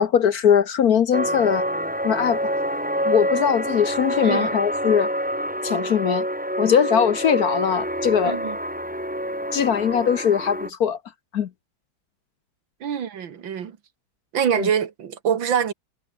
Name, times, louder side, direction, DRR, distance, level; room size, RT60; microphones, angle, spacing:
voice 1, 0.0-1.6 2.0-2.4 3.0-5.1 5.6-6.2 6.6-8.4 9.5-11.0 11.3-11.5 14.6-14.7, left 8 dB, 60° left, 1.2 m, -20 dB
sound 1, 1.1-10.7, equal, 5° right, 6.5 m, -26 dB
voice 2, 8.2-8.6 12.8-13.7 14.3-15.7, right 8 dB, 70° right, 2.3 m, -24 dB
omnidirectional pair, 2.2 m